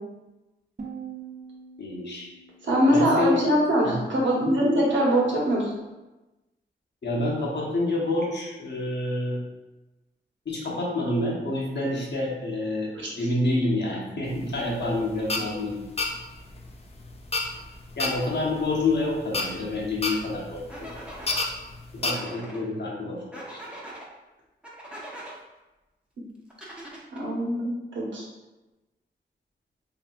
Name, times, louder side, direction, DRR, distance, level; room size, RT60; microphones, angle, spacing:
sound 1, 0.8-3.8, right 6 dB, 40° right, 0.6 m, -43 dB
voice 1, 1.8-2.3 2.9-3.4 3.8-4.0 7.0-9.4 10.5-12.9 13.2-15.8 18.0-20.9 22.0-23.2 23.5-23.6, left 2 dB, 65° left, -4 dB, 0.9 m, -28 dB
voice 2, 2.6-5.7 13.0-13.1 27.1-28.3, equal, 85° right, -4 dB, 0.9 m, -23 dB
sound 2, 14.3-22.1, left 3 dB, 35° left, 0.4 m, -31 dB
sound 3, 19.4-19.5 20.7-21.4 22.1-22.6 23.3-24.1 24.6-25.3 26.5-27.3, right 1 dB, 5° right, 0.8 m, -41 dB
3.2 x 2.7 x 2.5 m, 1.1 s
wide cardioid pair, 70°, 19 cm